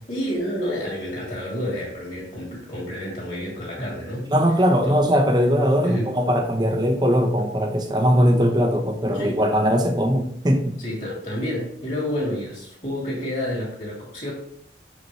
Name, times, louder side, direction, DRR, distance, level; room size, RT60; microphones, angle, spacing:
voice 1, 0.1-4.3 4.8-5.0 5.8-6.1 9.1-9.4 10.8-14.3, equal, 45° left, -3 dB, 2.3 m, -29 dB
voice 2, 4.3-10.8, equal, 25° right, 3 dB, 0.7 m, -20 dB
6.0 x 5.2 x 3.1 m, 0.72 s
head